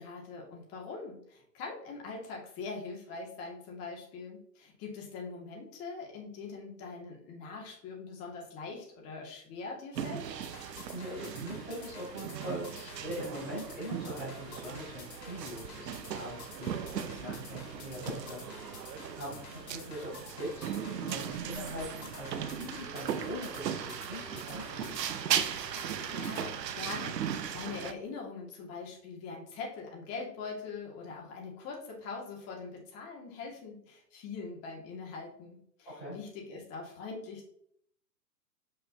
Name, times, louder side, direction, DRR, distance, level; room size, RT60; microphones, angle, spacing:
voice 1, 0.0-10.3 26.1-37.5, left 4 dB, 30° left, -1 dB, 2.1 m, -42 dB
sound 1, 10.0-27.9, right 9 dB, 80° right, 0.8 m, -38 dB
sound 2, 10.4-26.5, left 5 dB, 55° left, 2.6 m, -50 dB
voice 2, 10.9-25.0 35.8-36.1, equal, ahead, -14 dB, 0.3 m, -42 dB
6.4 x 5.8 x 2.8 m, 0.68 s
hypercardioid pair, 135°, 49 cm